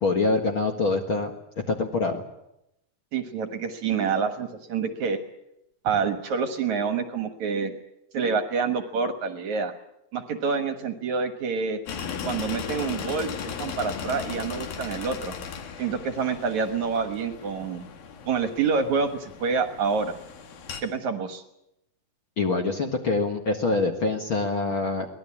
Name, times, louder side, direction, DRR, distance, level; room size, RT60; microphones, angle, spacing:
voice 1, 0.0-1.3 1.7-2.2 22.4-25.1, left 3 dB, 45° left, 3 dB, 1.9 m, -25 dB
voice 2, 3.1-5.2 5.8-7.7 8.1-9.7 10.1-11.8 12.2-15.4 15.8-17.9 18.3-20.1 20.8-21.4, right 5 dB, 60° right, 8 dB, 2.4 m, -27 dB
sound 1, 11.9-20.8, left 7 dB, 70° left, 3.7 m, -37 dB
23.5 x 18.5 x 8.7 m, 0.85 s
omnidirectional pair, 4.3 m